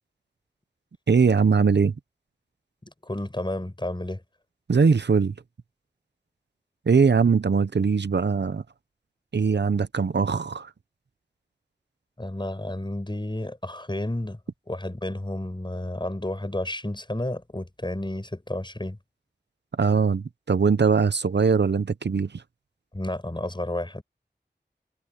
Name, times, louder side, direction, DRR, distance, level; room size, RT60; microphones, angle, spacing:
voice 1, 1.1-2.0 4.7-5.3 6.9-8.6 9.3-10.7 19.8-22.4, right 5 dB, 75° right, 0.7 m, -21 dB
voice 2, 2.8-4.2 12.2-14.4 14.7-19.0 22.9-24.0, left 1 dB, 25° left, 7.7 m, -31 dB
wide cardioid pair, 65°, 18 cm